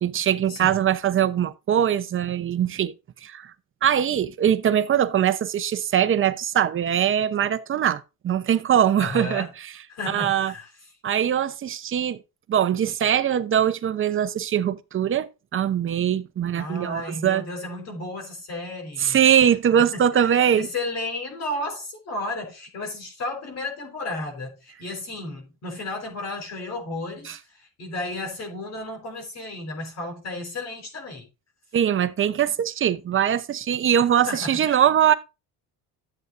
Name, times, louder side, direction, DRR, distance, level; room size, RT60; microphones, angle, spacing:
voice 1, 0.0-2.9 3.2-3.5 3.8-9.7 10.1-10.5 11.0-12.2 12.5-17.4 19.0-20.7 27.3-27.4 31.7-35.1, right 9 dB, 35° right, 0.8 m, -22 dB
voice 2, 9.0-9.5 9.9-10.7 16.6-19.2 19.8-31.3 34.3-34.8, left 2 dB, 45° left, 4.3 m, -33 dB
13.5 x 8.1 x 2.6 m
cardioid pair, 145°, 36 cm